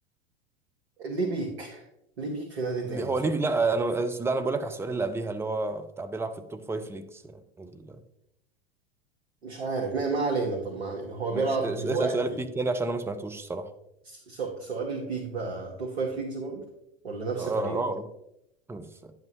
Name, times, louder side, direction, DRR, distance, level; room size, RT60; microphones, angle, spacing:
voice 1, 1.0-1.8 2.2-3.3 9.4-12.4 14.0-16.6 17.0-17.9, right 3 dB, 70° right, 0 dB, 1.6 m, -31 dB
voice 2, 2.8-8.0 11.3-13.7 17.4-18.1 18.7-19.1, right 3 dB, 10° right, 8 dB, 0.7 m, -30 dB
10.5 x 8.0 x 3.1 m, 0.82 s
figure-of-eight pair, 85°, 31 cm